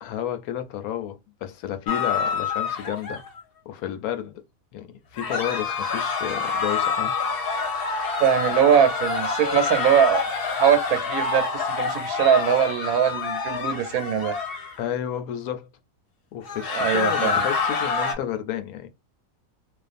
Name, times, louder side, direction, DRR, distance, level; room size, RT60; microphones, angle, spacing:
voice 1, 0.0-3.2 3.7-4.4 4.7-7.1 14.8-15.7 16.3-18.9, left 10 dB, 80° left, 1.0 m, -31 dB
sound 1, 1.9-3.4 5.2-14.8 16.4-18.1, left 5 dB, 50° left, 0.8 m, -27 dB
voice 2, 8.2-10.2 10.5-14.4 16.7-17.5, right 9 dB, 85° right, 1.1 m, -21 dB
2.4 x 2.3 x 2.4 m
omnidirectional pair, 1.5 m